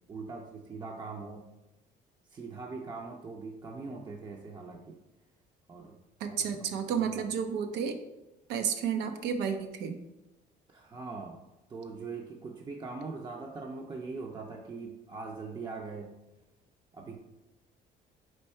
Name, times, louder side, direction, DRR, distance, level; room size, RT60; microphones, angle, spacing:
voice 1, 0.1-1.5 2.3-5.0 5.7-6.0 6.4-7.2 10.7-11.4 11.7-16.1 16.9-17.2, right 4 dB, 25° right, 1 dB, 0.5 m, -41 dB
voice 2, 6.2-8.0 8.5-10.0, right 7 dB, 85° right, 6 dB, 0.5 m, -31 dB
4.4 x 2.7 x 4.3 m, 0.98 s
cardioid pair, 110°, 17 cm